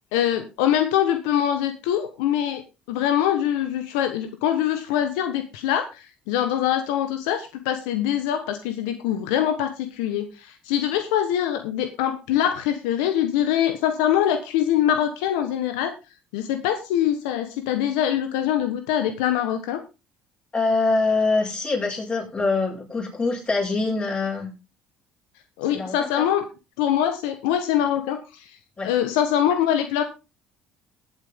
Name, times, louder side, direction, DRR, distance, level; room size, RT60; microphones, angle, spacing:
voice 1, 0.1-2.6 2.9-15.9 16.3-19.8 25.6-26.4 26.8-28.5 28.8-30.0, left 10 dB, 90° left, 8 dB, 1.3 m, -23 dB
voice 2, 20.5-24.5 25.7-26.3 28.8-28.9, left 3 dB, 30° left, -1 dB, 7.7 m, -24 dB
17.0 x 8.7 x 3.8 m, 0.29 s
supercardioid pair, 85°, 3 cm